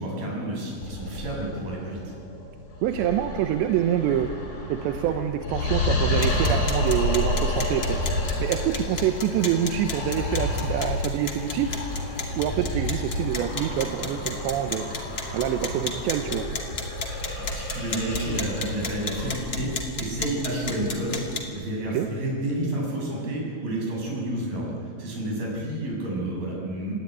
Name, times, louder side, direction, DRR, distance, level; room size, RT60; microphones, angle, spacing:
voice 1, 0.0-2.1 17.4-19.7 20.0-21.2 21.5-26.9, right 1 dB, 60° right, -2 dB, 8.9 m, -30 dB
sound 1, 0.8-20.5, left 1 dB, 60° left, 7.7 m, -30 dB
voice 2, 2.8-4.3 4.7-8.0 8.4-11.8 12.4-14.9 15.3-16.5 21.9-22.1, right 10 dB, 90° right, 6 dB, 3.2 m, -26 dB
sound 2, 6.1-21.4, left 3 dB, 30° left, 2.7 m, -35 dB
27.0 x 21.0 x 9.6 m, 2.4 s
omnidirectional pair, 4.9 m